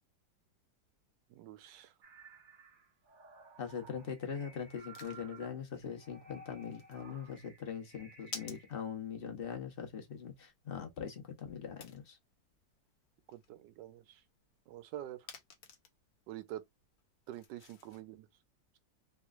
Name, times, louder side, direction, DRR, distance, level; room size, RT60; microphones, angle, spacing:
voice 1, 1.3-1.9 13.3-14.2 14.7-15.3 16.3-16.6 17.3-18.3, right 13 dB, 85° right, 1.3 m, -46 dB
sound 1, 2.0-8.8, right 3 dB, 40° right, 0.8 m, -56 dB
voice 2, 3.6-12.2, left 7 dB, 45° left, 0.8 m, -42 dB
sound 2, 4.6-18.0, left 6 dB, 65° left, 1.2 m, -55 dB
3.4 x 3.0 x 2.4 m
omnidirectional pair, 1.9 m